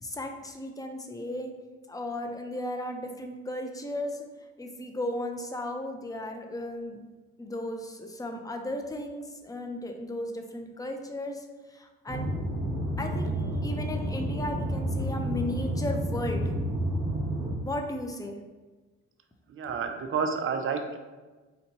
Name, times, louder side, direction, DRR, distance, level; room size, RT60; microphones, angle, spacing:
voice 1, 0.0-1.5 1.9-4.3 4.6-7.0 7.4-12.3 13.0-16.5 17.6-18.4, left 1 dB, 10° left, 4 dB, 0.4 m, -35 dB
sound 1, 12.1-17.6, right 1 dB, 5° right, 0.8 m, -30 dB
voice 2, 19.5-21.0, right 5 dB, 45° right, 5 dB, 0.5 m, -30 dB
4.4 x 2.7 x 2.8 m, 1.3 s
cardioid pair, 90°, 30 cm